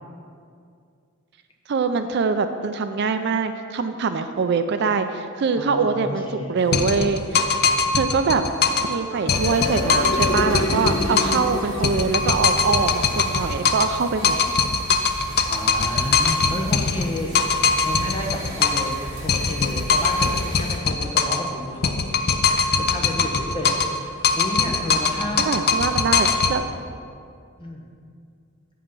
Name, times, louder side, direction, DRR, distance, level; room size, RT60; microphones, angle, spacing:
voice 1, 1.7-7.4 7.9-8.4 8.8-14.4 25.4-26.7, right 5 dB, 50° right, 9 dB, 0.4 m, -23 dB
voice 2, 5.6-6.8 15.5-17.3 17.8-19.0 19.2-22.0 22.4-25.6 27.6-27.8, left 1 dB, 25° left, -1 dB, 1.1 m, -31 dB
sound 1, 6.7-8.9 9.3-11.5 11.8-14.0 14.2-18.9 19.3-21.5 21.8-24.0 24.2-26.6, left 5 dB, 45° left, 0.5 m, -21 dB
sound 2, 8.8-14.2, left 1 dB, 70° left, 1.2 m, -29 dB
sound 3, 9.3-20.8, right 1 dB, 85° right, 2.2 m, -37 dB
8.5 x 5.6 x 5.3 m, 2.3 s
head